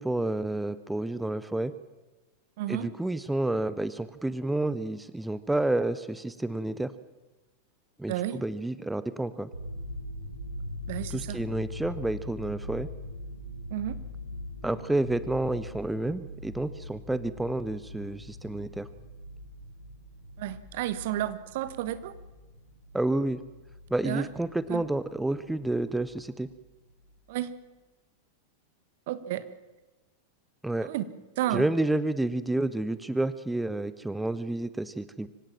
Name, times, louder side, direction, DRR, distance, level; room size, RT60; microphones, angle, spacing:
voice 1, 0.0-1.7 2.7-6.9 8.0-9.5 11.1-12.9 14.6-18.9 22.9-23.4 23.9-26.5 30.6-30.9 31.5-35.3, right 2 dB, 5° right, 15 dB, 0.8 m, -30 dB
voice 2, 2.6-2.9 8.1-8.4 10.9-11.4 13.7-14.0 20.4-22.1 24.0-24.3 24.7-24.8 27.3-27.5 29.1-29.5 30.8-31.0 31.4-31.7, right 13 dB, 50° right, 14 dB, 1.4 m, -31 dB
sound 1, 9.5-26.6 26.9-27.2, left 1 dB, 90° right, 2.5 m, -42 dB
25.0 x 16.5 x 7.4 m, 1.2 s
figure-of-eight pair, 90°, 0 cm